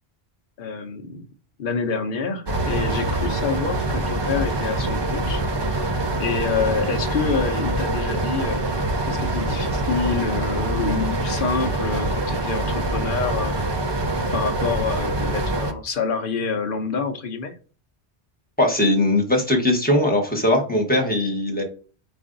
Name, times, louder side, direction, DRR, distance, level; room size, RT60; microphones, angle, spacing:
voice 1, 0.6-1.2 1.6-5.4 6.2-8.7 9.1-13.6 13.9-14.0 14.3-17.5, left 5 dB, 55° left, 7 dB, 0.8 m, -27 dB
sound 1, 2.5-15.7, right 2 dB, 35° right, 0.4 m, -25 dB
voice 2, 18.6-21.6, left 1 dB, 10° left, 0 dB, 1.0 m, -20 dB
4.8 x 2.5 x 3.8 m, 0.38 s
omnidirectional pair, 1.1 m